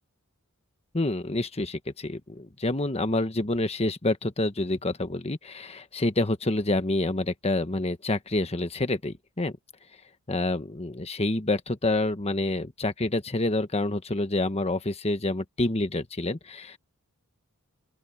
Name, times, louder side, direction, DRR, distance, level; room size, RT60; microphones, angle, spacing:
voice 1, 0.9-9.5 10.3-16.8, left 2 dB, 30° left, 1.3 m, -28 dB
open air
head